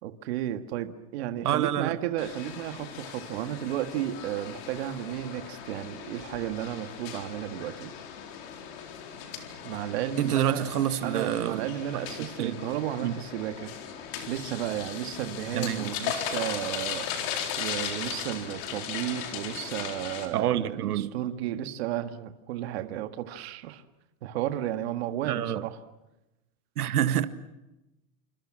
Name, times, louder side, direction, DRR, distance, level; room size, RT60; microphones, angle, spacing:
voice 1, 0.0-7.9 9.6-10.7 11.0-13.7 14.3-17.1 17.6-23.8 24.2-25.8, right 12 dB, 45° right, 1.7 m, -33 dB
voice 2, 1.4-2.0 10.2-11.7 12.4-12.7 13.0-13.2 15.5-15.9 20.3-21.1 25.2-25.6 26.8-27.3, right 11 dB, 75° right, 1.9 m, -27 dB
sound 1, 2.2-20.3, left 8 dB, 35° left, 4.0 m, -37 dB
28.0 x 26.5 x 7.5 m
supercardioid pair, 175°, 46 cm